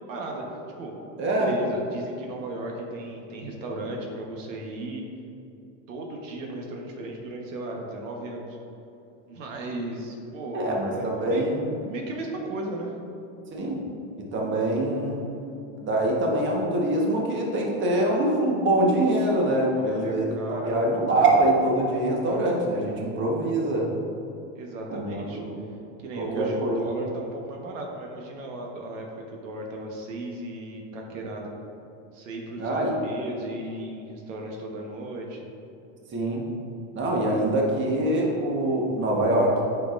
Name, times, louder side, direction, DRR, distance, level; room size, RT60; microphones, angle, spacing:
voice 1, 0.1-0.9 1.4-5.0 5.9-8.6 9.3-11.5 11.8-12.9 19.7-20.8 24.5-25.4 26.0-31.5 32.1-35.4, right 2 dB, 90° right, 0 dB, 1.2 m, -35 dB
voice 2, 1.2-1.5 10.5-11.7 13.5-13.8 14.1-15.2 15.8-23.9 24.9-25.6 26.2-26.8 32.6-32.9 36.1-36.4 36.9-39.6, right 1 dB, 30° right, -2 dB, 1.3 m, -24 dB
8.5 x 6.2 x 2.5 m, 2.8 s
supercardioid pair, 125°, 37 cm